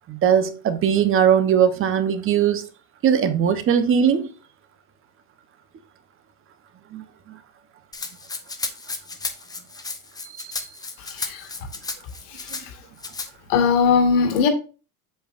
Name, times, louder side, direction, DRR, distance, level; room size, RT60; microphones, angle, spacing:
voice 1, 0.1-2.6 3.0-4.3 6.9-7.0 10.6-10.7, right 8 dB, 25° right, 0.9 m, -19 dB
Rattle (instrument), 7.9-12.6 13.0-13.3, left 3 dB, 10° left, 0.6 m, -33 dB
voice 2, 11.0-11.5 12.3-12.7 13.5-14.5, left 5 dB, 65° left, 2.1 m, -20 dB
7.9 x 7.1 x 2.5 m
supercardioid pair, 135°, 48 cm